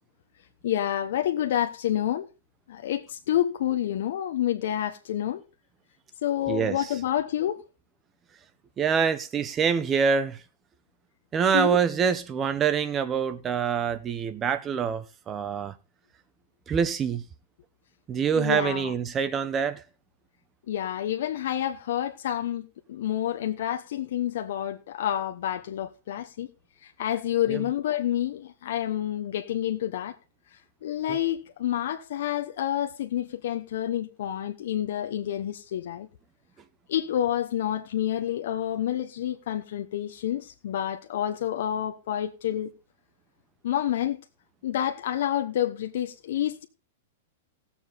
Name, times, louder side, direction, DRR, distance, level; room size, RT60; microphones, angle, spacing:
voice 1, 0.6-2.3 2.7-5.4 6.2-7.6 11.5-11.8 18.3-18.9 20.7-26.5 26.8-30.2 30.8-36.1 36.9-42.7 43.6-44.2 44.6-46.7, left 11 dB, 65° left, 1.0 m, -28 dB
voice 2, 6.5-6.9 8.8-10.4 11.3-15.7 16.7-17.2 18.1-19.8 27.5-27.6 31.1-31.2, right 7 dB, 20° right, 0.7 m, -25 dB
18.5 x 7.1 x 3.9 m
supercardioid pair, 160°, 0 cm